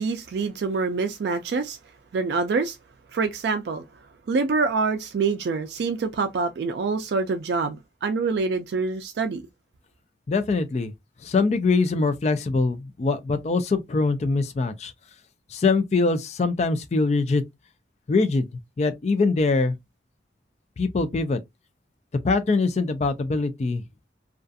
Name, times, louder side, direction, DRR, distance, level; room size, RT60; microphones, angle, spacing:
voice 1, 0.0-1.8 2.1-2.8 3.1-3.9 4.3-9.4, right 4 dB, 65° right, 0.3 m, -26 dB
voice 2, 10.3-10.9 11.2-14.9 15.5-17.4 18.1-18.5 18.8-19.7 20.8-21.4 22.2-23.8, left 3 dB, 35° left, 0.3 m, -23 dB
2.4 x 2.3 x 2.5 m
head